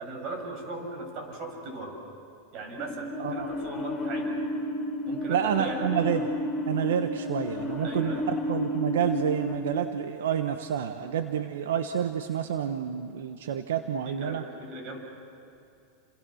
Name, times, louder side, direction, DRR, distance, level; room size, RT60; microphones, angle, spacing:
voice 1, 0.0-2.0 2.5-4.4 5.1-5.9 7.8-8.3 14.1-15.0, right 2 dB, 50° right, 3 dB, 7.1 m, -38 dB
sound 1, 2.8-9.5, left 1 dB, 25° left, 5.1 m, -32 dB
voice 2, 5.3-6.3 6.7-14.4, right 9 dB, 85° right, 8 dB, 1.2 m, -29 dB
30.0 x 27.5 x 6.5 m, 2.6 s
supercardioid pair, 130°, 0 cm